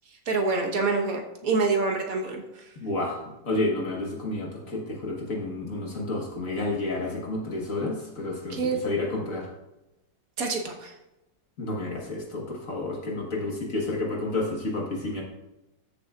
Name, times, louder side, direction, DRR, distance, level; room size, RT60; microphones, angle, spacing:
voice 1, 0.3-2.7 8.5-8.8 10.4-10.9, right 3 dB, 55° right, 2 dB, 1.4 m, -26 dB
voice 2, 2.8-3.1 3.4-8.6 8.8-9.4 11.6-15.2, left 2 dB, 45° left, -1 dB, 1.6 m, -30 dB
13.5 x 6.8 x 2.4 m, 0.94 s
omnidirectional pair, 2.1 m